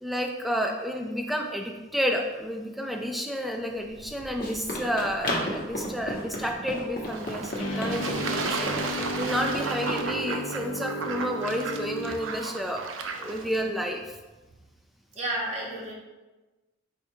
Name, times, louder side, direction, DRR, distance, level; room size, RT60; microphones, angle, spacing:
voice 1, 0.0-12.8 13.2-14.1, equal, ahead, 2 dB, 0.3 m, -30 dB
Run, 3.8-10.0, equal, 50° left, 0.9 m, -34 dB
Fowl / Bird / Water, 7.1-13.6, right 4 dB, 85° right, 0.4 m, -35 dB
sound 1, 7.6-12.5, equal, 85° left, 0.5 m, -34 dB
voice 2, 15.1-15.9, right 1 dB, 35° right, -4 dB, 1.0 m, -31 dB
4.4 x 2.4 x 4.3 m, 1.2 s
head